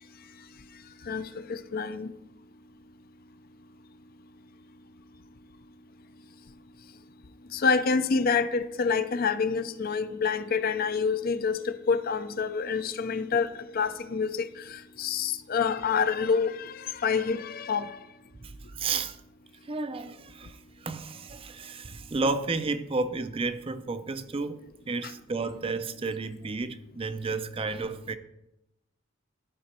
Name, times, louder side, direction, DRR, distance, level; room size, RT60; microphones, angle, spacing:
voice 1, 1.1-2.1 7.5-13.5 13.7-14.5 15.0-16.7 17.0-17.9, left 5 dB, 45° left, 0.5 m, -27 dB
voice 2, 18.4-19.2 19.7-24.6 24.9-28.2, right 3 dB, 25° right, 0.4 m, -32 dB
12.0 x 5.1 x 4.3 m
head